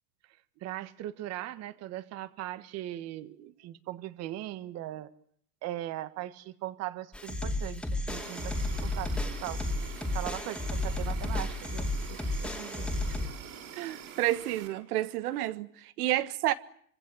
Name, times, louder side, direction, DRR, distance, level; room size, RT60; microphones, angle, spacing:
voice 1, 0.6-5.1 5.6-8.5 8.8-9.6 10.1-12.9, right 14 dB, 35° right, 1.5 m, -39 dB
sound 1, 7.1-13.3, left 2 dB, ahead, 2.6 m, -33 dB
Insect, 8.1-14.7, right 8 dB, 65° right, 7.5 m, -46 dB
voice 2, 13.8-16.5, right 14 dB, 80° right, 1.6 m, -30 dB
26.5 x 25.5 x 7.8 m
supercardioid pair, 155°, 44 cm